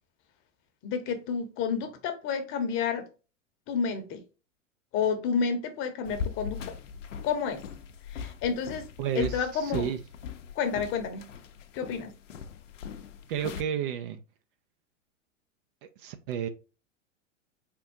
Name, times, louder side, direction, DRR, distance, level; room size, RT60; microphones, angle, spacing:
voice 1, 0.8-3.1 3.7-4.2 4.9-6.7 7.2-7.6 8.1-8.9 9.1-9.9 10.5-11.2 11.7-12.1, left 6 dB, 30° left, 0.9 m, -30 dB
sound 1, 6.0-13.6, left 7 dB, 70° left, 0.7 m, -40 dB
voice 2, 9.0-10.0 13.3-14.2 16.0-16.5, right 9 dB, 45° right, 0.5 m, -31 dB
4.1 x 3.6 x 2.7 m
figure-of-eight pair, 95°, 38 cm